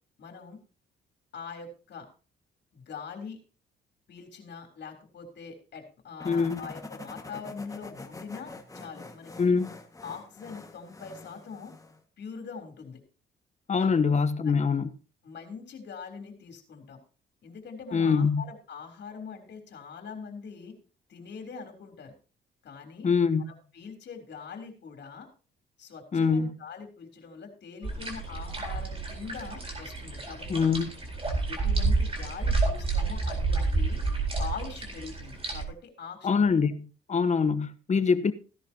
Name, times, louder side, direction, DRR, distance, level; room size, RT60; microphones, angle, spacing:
voice 1, 0.2-0.6 1.3-2.1 2.7-3.4 4.1-9.6 10.0-11.7 12.2-13.0 13.8-14.5 15.2-17.0 17.4-20.7 21.1-22.1 22.6-23.1 23.5-25.3 25.8-30.7 31.5-34.0 34.4-36.6, left 5 dB, 60° left, 3.5 m, -43 dB
voice 2, 6.2-6.6 9.4-9.7 13.7-14.9 17.9-18.4 23.0-23.4 26.1-26.5 30.5-30.9 36.2-36.8 37.1-38.3, left 5 dB, 35° left, 1.1 m, -24 dB
sound 1, 6.2-12.0, left 3 dB, 15° left, 1.8 m, -45 dB
sound 2, 27.8-35.6, right 3 dB, 30° right, 4.2 m, -29 dB
16.0 x 11.0 x 2.9 m
cardioid pair, 90°, 20 cm